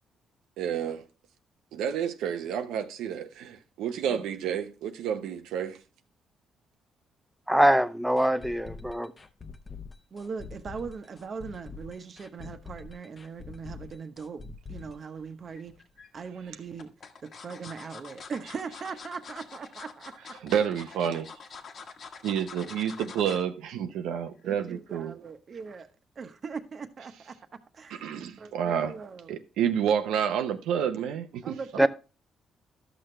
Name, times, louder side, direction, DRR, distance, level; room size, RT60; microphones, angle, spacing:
voice 1, 0.6-1.1 1.7-5.8 20.4-21.3 22.2-25.1 27.9-28.9 29.3-31.9, right 8 dB, 90° right, 0.8 m, -29 dB
voice 2, 7.5-9.1 31.8-31.9, right 1 dB, 5° right, 0.5 m, -23 dB
sound 1, 8.2-16.2 16.7-16.8, left 4 dB, 30° left, 0.9 m, -45 dB
voice 3, 10.1-14.4 14.7-15.7 16.1-16.9 17.2-20.3 24.4-25.9 26.2-27.4 27.7-28.0 28.4-29.3 31.4-31.9, right 5 dB, 45° right, 1.0 m, -40 dB
sound 2, 15.6-16.1 16.8-23.5 23.9-24.1 24.4-24.5, left 5 dB, 55° left, 1.3 m, -45 dB
12.5 x 6.1 x 3.2 m
cardioid pair, 90°, 0 cm